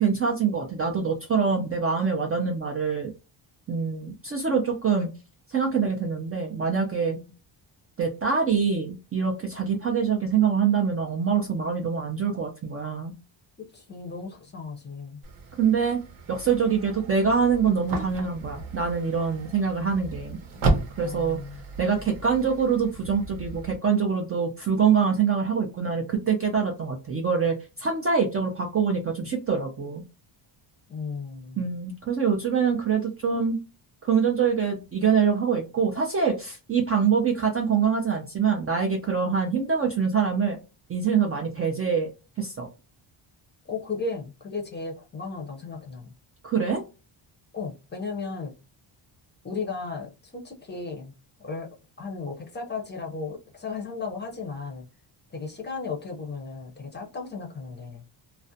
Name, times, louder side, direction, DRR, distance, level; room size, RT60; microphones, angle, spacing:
voice 1, 0.0-3.1 3.7-5.1 5.5-7.2 8.0-13.1 15.6-16.0 16.3-20.4 21.0-21.4 21.8-30.0 31.6-33.6 34.0-40.6 40.9-42.1 42.4-42.7 46.4-46.8, right 6 dB, 30° right, 0.4 m, -24 dB
voice 2, 13.6-15.2 21.0-21.6 30.9-31.7 43.7-46.1 47.5-48.5 49.4-51.1 51.4-51.7 52.0-54.9 55.3-58.0, left 4 dB, 20° left, 0.6 m, -35 dB
sound 1, 15.2-23.8, right 2 dB, 75° right, 0.9 m, -33 dB
2.4 x 2.1 x 2.6 m
cardioid pair, 150°, 48 cm